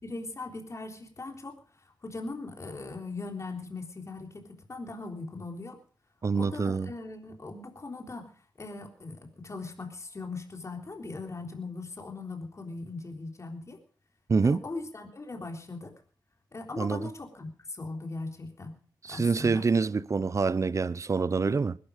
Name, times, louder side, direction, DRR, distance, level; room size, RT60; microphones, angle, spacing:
voice 1, 0.0-1.6 2.0-5.8 6.3-8.3 8.6-13.8 14.4-15.9 16.5-18.8 19.1-19.6, left 3 dB, 40° left, 3.7 m, -39 dB
voice 2, 6.2-6.9 14.3-14.6 16.8-17.1 19.0-21.8, right 4 dB, 45° right, 0.7 m, -26 dB
20.5 x 12.0 x 5.1 m
cardioid pair, 75°, 8 cm